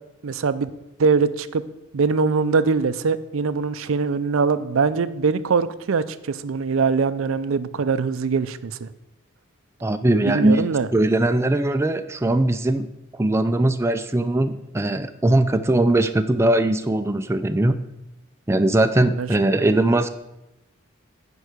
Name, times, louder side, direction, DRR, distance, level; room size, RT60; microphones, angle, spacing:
voice 1, 0.2-0.7 1.0-1.6 1.9-8.9 10.2-10.9 19.2-19.3, right 5 dB, 85° right, 14 dB, 0.5 m, -22 dB
voice 2, 9.8-12.9 13.1-17.7 18.5-20.1, right 1 dB, 15° right, 9 dB, 0.4 m, -20 dB
9.9 x 4.6 x 6.6 m, 0.91 s
head